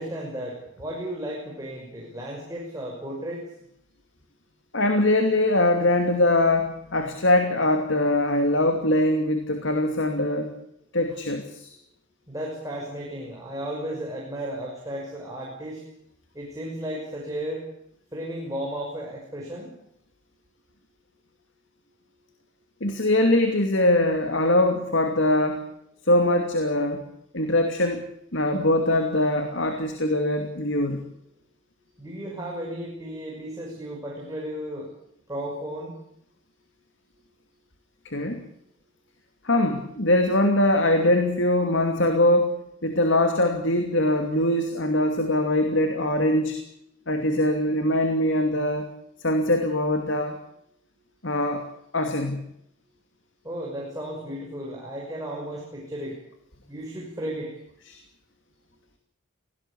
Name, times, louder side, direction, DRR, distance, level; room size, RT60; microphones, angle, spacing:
voice 1, 0.0-3.4 12.3-15.8 16.3-17.7 18.1-19.7 32.0-34.9 35.3-35.9 53.4-56.2 56.7-57.5, right 1 dB, 15° right, -2 dB, 6.1 m, -34 dB
voice 2, 4.7-10.5 10.9-11.7 22.8-25.6 26.1-27.0 27.3-28.0 28.3-31.0 38.0-38.4 39.4-42.6 42.8-46.6 47.1-48.9 49.2-50.4 51.2-51.6 51.9-52.4 57.9-58.0, left 1 dB, 55° left, 5 dB, 2.7 m, -22 dB
24.5 x 18.5 x 8.6 m, 0.75 s
head